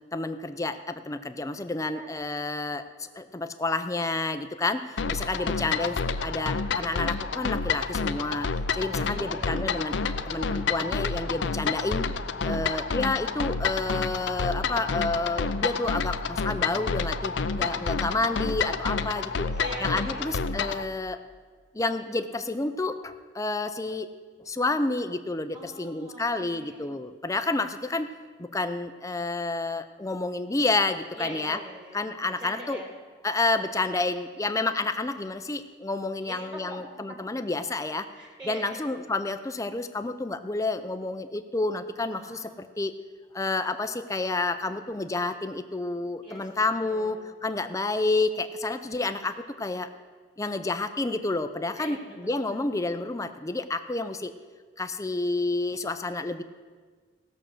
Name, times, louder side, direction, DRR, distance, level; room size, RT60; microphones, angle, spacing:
voice 1, 0.1-6.0 6.2-8.5 8.7-12.1 12.4-19.5 19.8-21.2 21.7-24.1 24.5-28.1 28.4-31.6 31.9-32.8 33.2-38.1 38.5-42.9 43.3-49.9 50.4-54.3 54.8-56.4, left 2 dB, 15° left, 10 dB, 0.6 m, -30 dB
sound 1, 5.0-20.8, left 5 dB, 65° left, 0.6 m, -29 dB
voice 2, 5.4-5.8 8.9-9.5 12.5-12.8 19.0-20.4 25.5-26.9 31.1-32.1 32.4-32.9 36.2-37.2 38.1-38.8 42.1-42.6 46.2-47.3 51.8-52.6, equal, 25° right, 0 dB, 2.3 m, -43 dB
16.5 x 6.5 x 7.7 m, 1.5 s
head